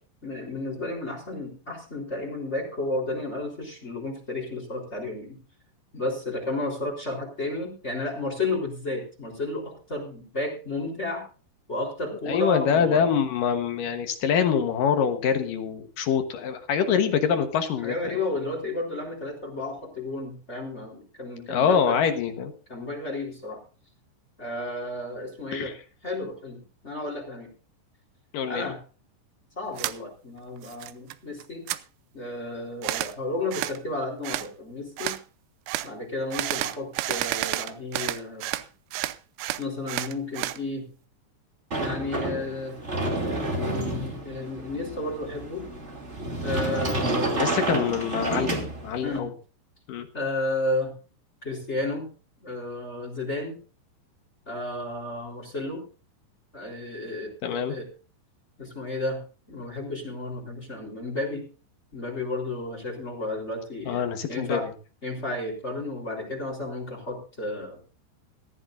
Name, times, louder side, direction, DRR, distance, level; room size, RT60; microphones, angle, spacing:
voice 1, 0.2-5.4 5.9-11.2 11.7-13.1 16.9-17.0 17.8-22.0 22.7-23.6 24.4-25.7 26.0-27.5 28.5-28.8 29.5-31.6 32.1-35.2 35.8-38.4 39.6-40.9 41.8-42.7 43.5-45.7 46.4-47.3 49.0-49.3 50.1-50.9 51.4-52.1 52.4-53.6 54.4-55.8 56.5-57.9 58.6-59.2 59.5-61.4 61.9-64.6 65.0-67.8, left 2 dB, 15° left, 2 dB, 3.4 m, -32 dB
voice 2, 12.3-18.2 21.5-22.5 25.5-25.7 28.3-28.7 47.3-49.3 49.9-50.1 57.4-57.8 63.9-64.6, left 7 dB, 75° left, 7 dB, 2.0 m, -25 dB
sound 1, 29.8-30.0 30.4-31.1 31.4-31.8 32.8-33.1 33.5-33.8 34.2-34.5 35.0-35.2 35.7-35.9 36.3-38.7 38.9-40.6, right 16 dB, 85° right, 3.3 m, -30 dB
Sliding door, 41.7-49.2, right 2 dB, 25° right, 1.5 m, -30 dB
18.5 x 14.5 x 2.6 m, 0.37 s
omnidirectional pair, 5.6 m